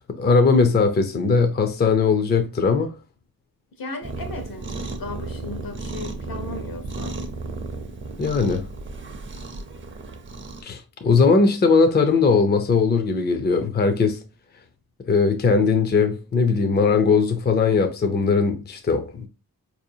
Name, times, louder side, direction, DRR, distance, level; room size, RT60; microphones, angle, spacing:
voice 1, 0.2-2.9 8.2-8.7 10.6-14.2 15.1-19.3, left 4 dB, 30° left, 0.5 m, -19 dB
voice 2, 3.8-7.1, left 3 dB, 70° left, 0.9 m, -36 dB
Cat, 4.0-10.6, right 3 dB, 35° right, 0.6 m, -34 dB
4.6 x 2.7 x 2.6 m
wide cardioid pair, 140°, 36 cm